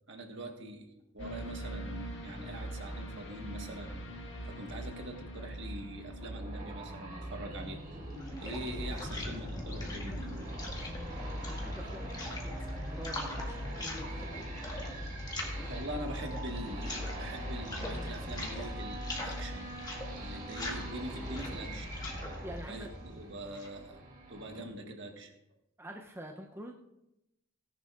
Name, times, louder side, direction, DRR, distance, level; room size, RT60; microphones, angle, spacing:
voice 1, 0.1-0.9 1.1-4.0 4.5-7.8 8.4-10.3 10.6-10.8 15.5-19.7 20.2-21.9 22.3-24.0 24.3-25.3, right 1 dB, 55° right, 2 dB, 1.6 m, -43 dB
sound 1, 1.2-19.0 19.4-19.5, right 1 dB, 55° left, 2.1 m, -46 dB
sound 2, 6.2-24.6, right 2 dB, 35° right, 2.3 m, -46 dB
sound 3, 7.8-23.8, left 1 dB, 20° left, 1.8 m, -40 dB
voice 2, 10.7-14.5 22.4-23.2 25.8-26.7, right 1 dB, 10° right, 1 dB, 0.6 m, -47 dB
17.5 x 10.5 x 2.5 m, 0.88 s
head